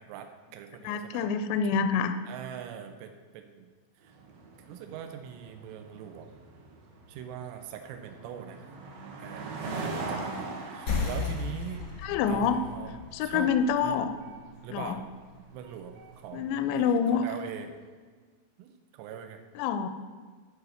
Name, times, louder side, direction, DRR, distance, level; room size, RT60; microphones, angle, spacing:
voice 1, 0.0-1.3 2.3-3.7 4.0-4.2 4.7-6.4 7.1-8.6 9.2-9.6 10.0-11.8 12.3-12.9 13.2-13.5 13.8-14.0 14.6-15.0 15.5-16.7 17.1-17.7 18.6-19.4, right 9 dB, 90° right, 6 dB, 3.2 m, -42 dB
voice 2, 0.8-2.2 12.0-12.6 13.1-14.1 14.7-15.0 16.3-17.3 19.6-19.9, left 6 dB, 85° left, 10 dB, 2.6 m, -27 dB
sound 1, 4.1-17.6, right 3 dB, 65° right, 2.5 m, -42 dB
sound 2, 10.9-16.0, left 4 dB, 50° left, 1.3 m, -36 dB
11.0 x 4.8 x 6.5 m, 1.5 s
omnidirectional pair, 5.6 m